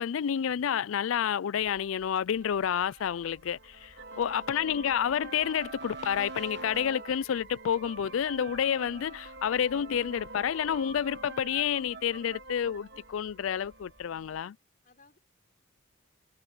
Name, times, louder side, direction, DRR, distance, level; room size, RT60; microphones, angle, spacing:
voice 1, 0.0-14.6, left 8 dB, 85° left, 0.4 m, -29 dB
sound 1, 1.6-14.4, equal, 25° left, 6.5 m, -61 dB
sound 2, 2.4-14.2, right 3 dB, 55° right, 1.3 m, -45 dB
voice 2, 4.0-4.7 14.8-15.2, left 4 dB, 40° left, 4.3 m, -62 dB
head